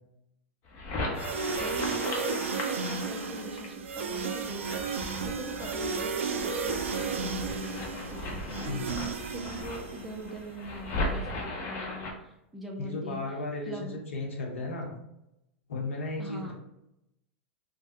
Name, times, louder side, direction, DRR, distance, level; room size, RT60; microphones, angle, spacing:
sound 1, 0.7-12.1, left 1 dB, 45° left, 0.8 m, -37 dB
sound 2, 1.2-10.3, right 5 dB, 80° right, 0.4 m, -33 dB
voice 1, 1.6-13.2 13.7-14.0 16.2-16.5, right 1 dB, ahead, -1 dB, 0.5 m, -42 dB
voice 2, 8.7-9.0 12.8-14.9 15.7-16.5, left 2 dB, 80° left, 0 dB, 0.9 m, -35 dB
3.2 x 2.2 x 2.9 m, 0.86 s
hypercardioid pair, 100°, 7 cm